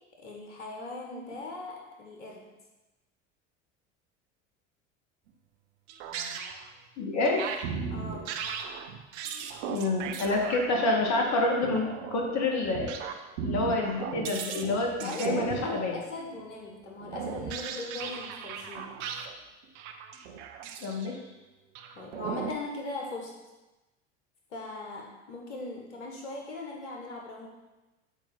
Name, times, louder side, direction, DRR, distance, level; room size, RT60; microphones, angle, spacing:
voice 1, 0.2-2.5 7.9-8.3 15.0-18.9 22.0-23.3 24.5-27.5, left 3 dB, 80° left, 0 dB, 1.5 m, -39 dB
sound 1, 5.9-6.7 7.4-16.4 17.0-19.4 19.6-21.2 21.7-22.5, right 6 dB, 65° right, 0.9 m, -37 dB
voice 2, 7.0-7.4 9.7-12.9 13.4-16.0 20.8-21.2, left 2 dB, 50° left, 0 dB, 1.8 m, -28 dB
8.0 x 4.5 x 5.9 m, 1.1 s
hypercardioid pair, 75°, 36 cm